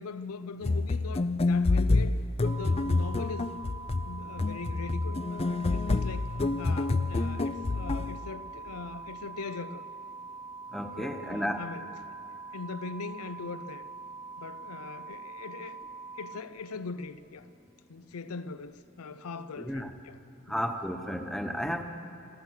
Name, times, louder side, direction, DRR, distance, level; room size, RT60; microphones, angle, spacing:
voice 1, 0.0-3.5 4.0-6.3 6.6-9.8 11.0-11.8 12.5-13.8 14.4-15.8 16.2-17.5 17.9-20.2 20.5-20.6, left 4 dB, 85° left, 0.6 m, -41 dB
sound 1, 0.6-8.2, left 3 dB, 25° left, 0.4 m, -28 dB
sound 2, 2.4-16.4, right 4 dB, 25° right, 0.8 m, -44 dB
voice 2, 10.7-11.6 19.6-19.9 20.5-21.8, equal, ahead, 1.0 m, -33 dB
28.0 x 14.5 x 6.5 m
head